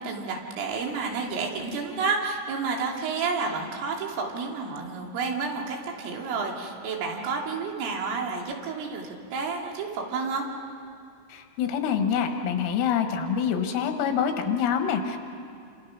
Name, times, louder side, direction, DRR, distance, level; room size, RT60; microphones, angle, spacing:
voice 1, 0.0-10.4, right 4 dB, 75° right, 0 dB, 5.0 m, -30 dB
voice 2, 11.3-15.2, left 7 dB, 85° left, 5 dB, 4.1 m, -26 dB
29.0 x 27.0 x 5.8 m, 2.3 s
omnidirectional pair, 6.0 m